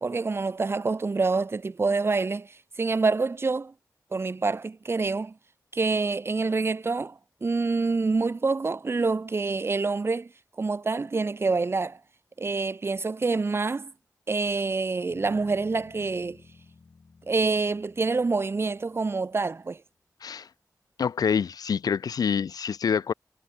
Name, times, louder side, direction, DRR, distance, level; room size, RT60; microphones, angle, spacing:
voice 1, 0.0-3.7 4.1-5.3 5.7-10.3 10.6-12.0 12.4-13.9 14.3-16.4 17.3-19.8, right 3 dB, 40° right, 0.5 m, -26 dB
Bass guitar, 15.1-19.5, left 4 dB, 60° left, 3.0 m, -54 dB
voice 2, 21.0-23.1, left 7 dB, 90° left, 0.5 m, -26 dB
wide cardioid pair, 70°, 6 cm